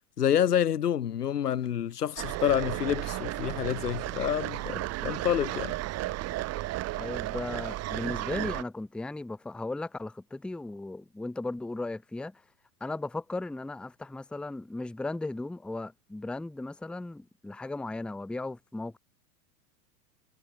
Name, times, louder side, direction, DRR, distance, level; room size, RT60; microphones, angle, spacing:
voice 1, 0.2-5.8, left 9 dB, 80° left, 1.6 m, -28 dB
sound 1, 2.2-8.6, right 17 dB, 35° right, 1.3 m, -34 dB
voice 2, 7.0-12.3 12.8-19.0, left 2 dB, ahead, 0.7 m, -36 dB
hypercardioid pair, 100°, 46 cm